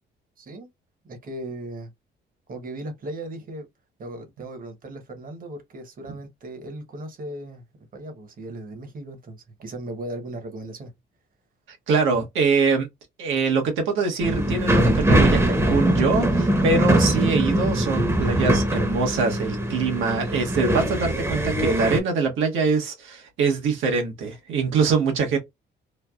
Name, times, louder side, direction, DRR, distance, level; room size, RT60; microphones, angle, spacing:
voice 1, 0.4-0.7 1.0-1.9 2.5-3.7 4.0-10.9, right 1 dB, 45° right, 1.1 m, -37 dB
voice 2, 11.7-12.9 13.2-25.4, right 4 dB, 80° right, 1.1 m, -24 dB
sound 1, 14.2-22.0, right 1 dB, 15° right, 0.8 m, -22 dB
3.2 x 2.1 x 2.3 m
cardioid pair, 90°, 20 cm